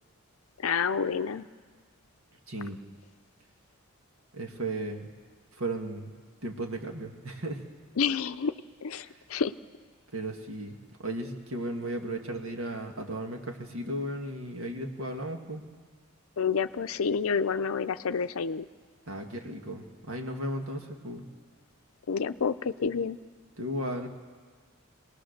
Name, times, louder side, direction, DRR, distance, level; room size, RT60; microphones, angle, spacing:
voice 1, 0.6-1.5 8.0-8.5 8.8-9.5 16.4-18.7 22.1-23.2, left 6 dB, 75° left, 10 dB, 0.5 m, -29 dB
voice 2, 2.5-2.8 4.3-5.1 5.6-6.1 6.4-7.6 9.0-9.2 10.1-10.8 11.0-15.6 19.1-21.3 23.6-24.1, right 1 dB, 75° right, 3 dB, 1.8 m, -35 dB
27.0 x 19.5 x 6.6 m, 1.6 s
head